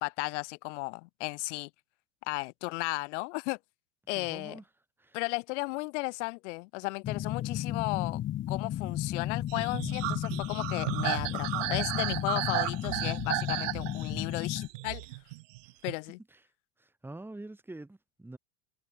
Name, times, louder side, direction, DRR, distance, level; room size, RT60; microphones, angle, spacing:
voice 1, 0.0-1.7 2.2-3.6 4.1-4.6 5.1-8.2 8.5-15.1 15.8-16.2, left 26 dB, 65° left, 2.3 m, -35 dB
voice 2, 4.2-4.6 5.0-5.2 15.7-15.8 16.3-16.4 16.8-18.4, right 2 dB, 5° right, 5.7 m, -45 dB
sound 1, 7.0-14.7, left 12 dB, 30° left, 1.5 m, -34 dB
sound 2, 9.5-15.9, right 22 dB, 75° right, 0.8 m, -34 dB
supercardioid pair, 140°, 38 cm